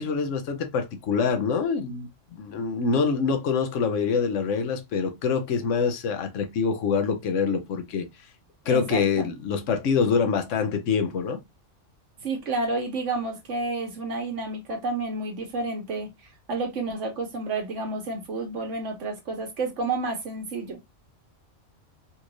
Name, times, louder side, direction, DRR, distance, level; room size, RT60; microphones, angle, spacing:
voice 1, 0.0-2.1 2.4-8.1 8.7-11.4, left 5 dB, 75° left, 1.1 m, -25 dB
voice 2, 8.7-9.3 12.2-16.1 16.5-20.8, right 3 dB, 70° right, 1.4 m, -30 dB
4.2 x 2.5 x 2.9 m
omnidirectional pair, 1.3 m